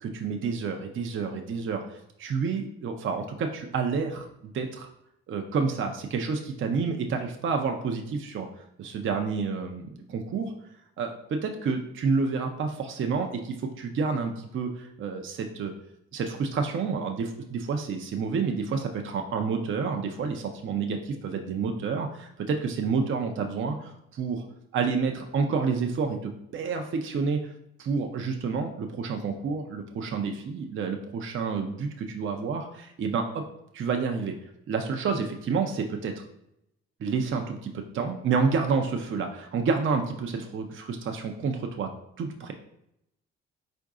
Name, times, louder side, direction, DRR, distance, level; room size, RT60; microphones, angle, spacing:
voice 1, 0.0-4.9 5.3-8.5 8.8-10.5 11.0-15.7 16.1-24.4 24.7-27.4 27.8-33.4 33.7-34.4 34.7-36.2 37.0-41.9 42.2-42.5, right 5 dB, 40° right, 4 dB, 0.5 m, -29 dB
4.5 x 2.6 x 3.6 m, 0.80 s
hypercardioid pair, 50°, 30 cm